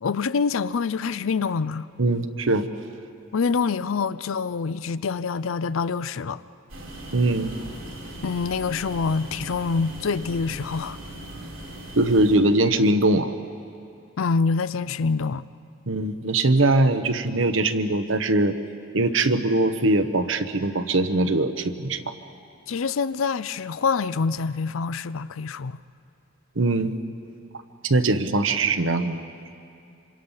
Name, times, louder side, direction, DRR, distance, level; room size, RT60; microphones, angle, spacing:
voice 1, 0.0-1.9 3.3-6.4 8.2-11.0 14.2-15.4 22.7-25.8, left 5 dB, 85° left, 0.5 m, -26 dB
voice 2, 2.0-2.7 7.1-7.5 12.0-13.3 15.9-18.6 18.9-22.1 26.6-26.9 27.8-29.2, right 2 dB, 70° right, 1.1 m, -21 dB
sound 1, 6.7-12.4, right 1 dB, 90° right, 4.6 m, -39 dB
26.0 x 26.0 x 5.7 m
head